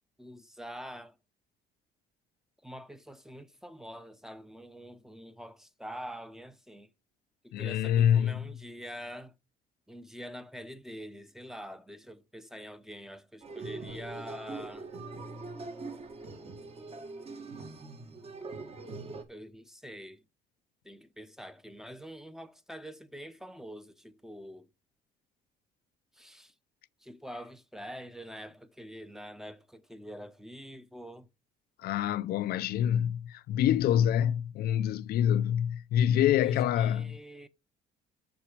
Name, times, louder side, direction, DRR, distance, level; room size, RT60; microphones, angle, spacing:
voice 1, 0.2-1.2 2.6-6.9 7.4-9.3 9.9-14.9 19.3-20.2 20.8-24.7 26.1-26.5 27.0-31.3 36.3-37.5, equal, ahead, 0.8 m, -45 dB
voice 2, 7.5-8.5 31.8-37.2, left 10 dB, 65° left, 0.5 m, -26 dB
sound 1, 13.4-19.2, right 3 dB, 35° right, 1.5 m, -42 dB
7.0 x 5.9 x 4.9 m
cardioid pair, 110°, 17 cm